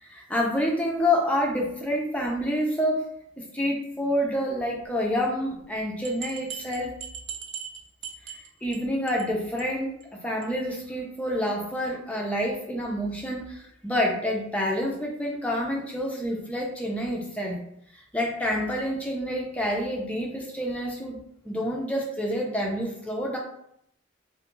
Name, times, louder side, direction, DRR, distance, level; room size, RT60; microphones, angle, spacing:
voice 1, 0.0-3.0 3.4-6.9 8.6-17.6 18.1-21.2 21.4-23.4, equal, 5° left, -1 dB, 0.4 m, -28 dB
sound 1, 5.6-5.7 6.0-8.8 9.1-9.3 9.6-9.7 10.0-10.1 10.4-10.5, right 7 dB, 65° right, 0.3 m, -39 dB
2.3 x 2.1 x 3.0 m, 0.71 s
head